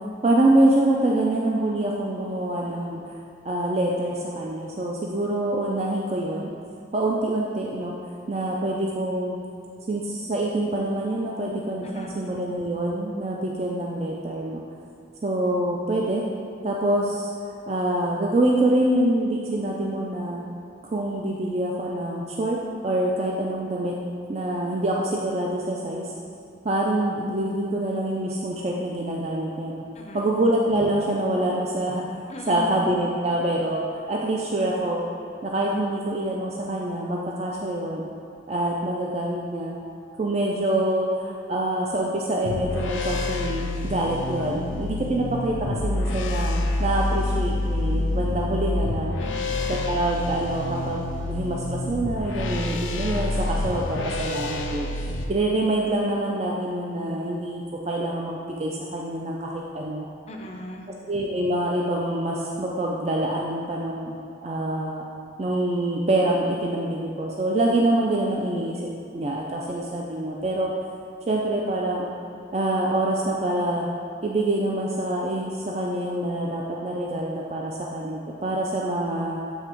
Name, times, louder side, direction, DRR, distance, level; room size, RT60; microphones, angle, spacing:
voice 1, 0.2-3.1 3.4-6.5 6.9-7.9 8.3-9.4 9.9-14.6 15.2-16.2 16.6-20.4 20.9-22.6 22.8-23.9 24.3-26.1 26.6-29.8 30.1-32.0 32.5-35.1 35.4-38.1 38.5-39.8 40.2-49.1 49.7-54.9 55.3-60.1 61.1-64.1 64.4-65.1 65.4-70.7 71.3-72.1 72.5-73.9 74.2-79.4, right 1 dB, 35° right, -2 dB, 0.4 m, -25 dB
voice 2, 11.8-12.3 29.9-30.3 32.3-32.9 49.2-49.8 60.3-60.9, equal, 35° left, 1 dB, 0.6 m, -38 dB
sound 1, 42.4-55.3, left 2 dB, 90° left, 0.5 m, -28 dB
8.0 x 3.4 x 4.5 m, 2.6 s
head